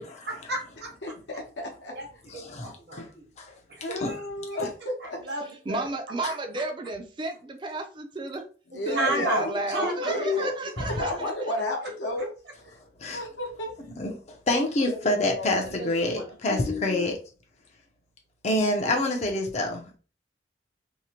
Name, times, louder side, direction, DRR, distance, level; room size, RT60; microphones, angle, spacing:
voice 1, 0.0-0.9 1.9-2.1 2.3-3.2 3.7-4.2 5.0-5.9 6.2-6.3 8.7-10.5 10.8-11.2 15.5-16.3, right 2 dB, 60° right, -1 dB, 0.8 m, -34 dB
voice 2, 1.0-1.9 3.8-5.2 8.7-10.6 10.9-12.3 12.7-12.8 13.1-13.7 14.5-15.5 16.5-17.1, left 2 dB, 80° left, -1 dB, 0.8 m, -32 dB
voice 3, 2.3-3.1 3.4-3.5 3.9-4.1 6.2-6.3 13.0-13.2 14.0-17.1 18.4-20.0, left 1 dB, 35° left, 2 dB, 0.5 m, -27 dB
voice 4, 5.7-8.4 8.9-11.5, right 2 dB, 25° right, 4 dB, 0.4 m, -33 dB
2.7 x 2.0 x 2.8 m, 0.37 s
head